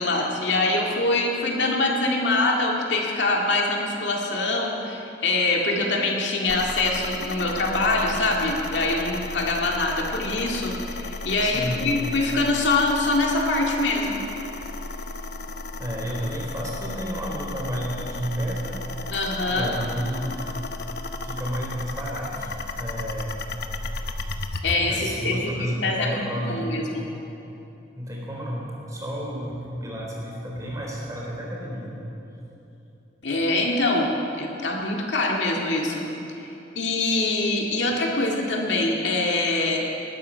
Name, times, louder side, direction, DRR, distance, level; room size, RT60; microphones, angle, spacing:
voice 1, 0.0-14.2 19.1-19.9 24.6-25.4 25.8-27.0 33.2-34.1 34.4-36.0 36.4-36.5 36.8-39.8, left 2 dB, 75° left, 0 dB, 2.1 m, -24 dB
sound 1, 6.5-24.8, left 3 dB, 60° left, 0.9 m, -34 dB
voice 2, 11.4-11.8 15.8-18.8 19.5-20.3 21.2-23.5 24.8-27.0 27.9-32.1, equal, 20° right, -4 dB, 3.8 m, -31 dB
19.0 x 12.0 x 5.7 m, 3.0 s
head